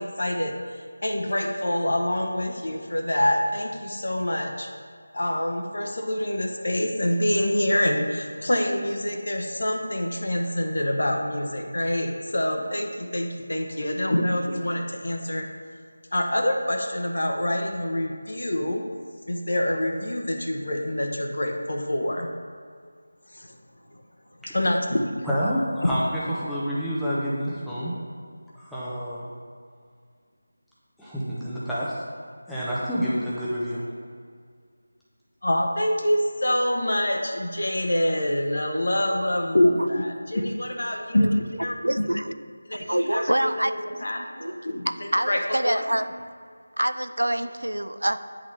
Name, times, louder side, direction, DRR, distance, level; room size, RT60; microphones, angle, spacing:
voice 1, 0.0-4.7 5.1-15.5 16.1-18.9 19.3-22.3 23.3-23.6 23.9-24.0 24.5-25.3 25.8-25.9 35.4-42.0 42.7-44.9 45.3-45.8, left 1 dB, 60° left, 3 dB, 0.8 m, -26 dB
voice 2, 25.2-27.9 28.6-29.3 31.0-32.0 32.5-33.8, equal, ahead, -11 dB, 0.7 m, -28 dB
voice 3, 41.8-42.3 42.9-43.7 44.4-46.1 46.8-48.2, right 1 dB, 80° right, 10 dB, 0.3 m, -26 dB
9.5 x 3.9 x 3.2 m, 2.1 s
figure-of-eight pair, 165°, 0 cm